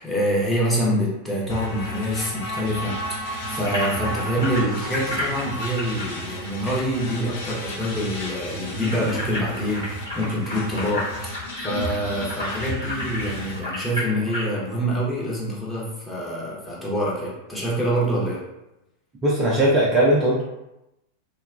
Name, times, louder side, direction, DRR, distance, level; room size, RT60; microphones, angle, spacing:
voice 1, 0.0-18.4, equal, 5° left, -7 dB, 0.9 m, -26 dB
sound 1, 1.5-13.6, equal, 55° left, 0.6 m, -33 dB
sound 2, 3.6-7.5 7.8-7.9 8.2-14.5, left 1 dB, 90° left, 1.3 m, -32 dB
voice 2, 19.2-20.4, right 1 dB, 20° right, -6 dB, 0.5 m, -19 dB
2.8 x 2.2 x 2.4 m, 0.93 s
figure-of-eight pair, 90°, 0 cm